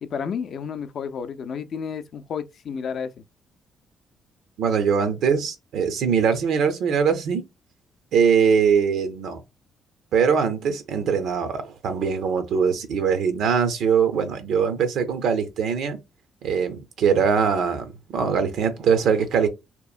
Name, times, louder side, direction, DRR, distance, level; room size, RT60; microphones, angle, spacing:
voice 1, 0.0-3.2, left 6 dB, 60° left, 0.3 m, -31 dB
voice 2, 4.6-7.4 8.1-9.4 10.1-16.0 16.4-19.5, right 6 dB, 80° right, 0.5 m, -22 dB
2.8 x 2.1 x 2.4 m
cardioid pair, 90°, 0 cm